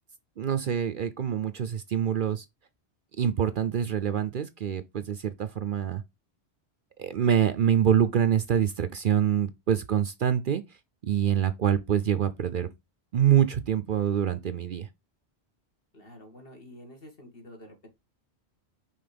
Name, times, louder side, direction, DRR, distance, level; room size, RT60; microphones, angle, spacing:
voice 1, 0.4-2.4 3.2-6.0 7.0-10.6 11.0-12.7 13.1-14.9, right 9 dB, 55° right, 0.7 m, -25 dB
voice 2, 15.9-17.9, equal, 55° left, 2.2 m, -48 dB
5.8 x 3.8 x 5.1 m
omnidirectional pair, 1.1 m